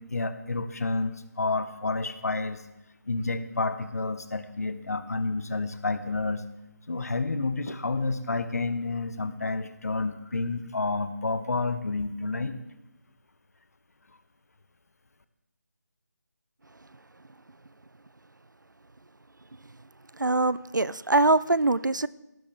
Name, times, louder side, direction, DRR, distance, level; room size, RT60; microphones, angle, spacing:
voice 1, 0.0-2.6 3.1-6.4 6.9-12.5, left 3 dB, 55° left, 11 dB, 0.9 m, -30 dB
voice 2, 20.1-22.1, right 2 dB, 85° right, 19 dB, 0.4 m, -23 dB
14.0 x 12.0 x 3.4 m, 0.92 s
figure-of-eight pair, 155°, 10 cm